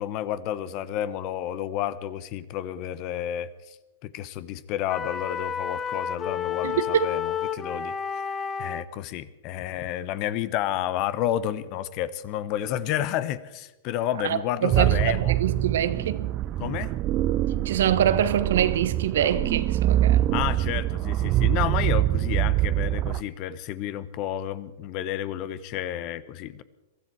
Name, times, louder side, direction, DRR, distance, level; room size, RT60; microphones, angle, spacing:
voice 1, 0.0-3.8 4.0-7.9 8.6-15.3 16.6-16.9 20.3-26.6, left 11 dB, 45° left, 0.9 m, -30 dB
sound 1, 4.9-8.9, left 8 dB, 20° left, 0.8 m, -30 dB
voice 2, 6.6-7.1 14.2-16.4 17.6-20.3, right 10 dB, 70° right, 1.1 m, -25 dB
sound 2, 14.7-23.2, right 14 dB, 40° right, 0.5 m, -24 dB
23.0 x 13.5 x 4.6 m
hypercardioid pair, 110°, 0 cm